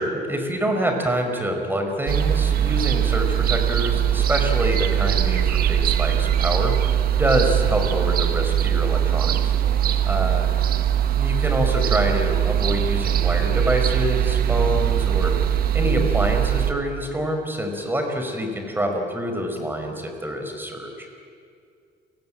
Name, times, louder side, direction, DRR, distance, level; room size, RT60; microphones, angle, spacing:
voice 1, 0.0-9.5 10.0-10.5 11.2-21.1, equal, 10° right, 4 dB, 5.0 m, -26 dB
sound 1, 2.1-16.7, right 10 dB, 60° right, 1.4 m, -21 dB
29.5 x 19.0 x 9.0 m, 2.3 s
cardioid pair, 110°, 17 cm